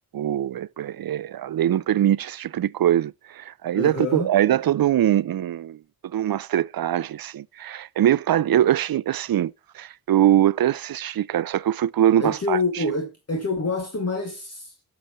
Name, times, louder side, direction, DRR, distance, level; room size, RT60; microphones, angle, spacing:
voice 1, 0.1-5.8 6.1-12.6, right 11 dB, 65° right, 0.5 m, -22 dB
voice 2, 3.7-4.3 12.2-14.9, left 3 dB, 40° left, 2.3 m, -27 dB
17.0 x 7.0 x 3.1 m
wide cardioid pair, 65°, 39 cm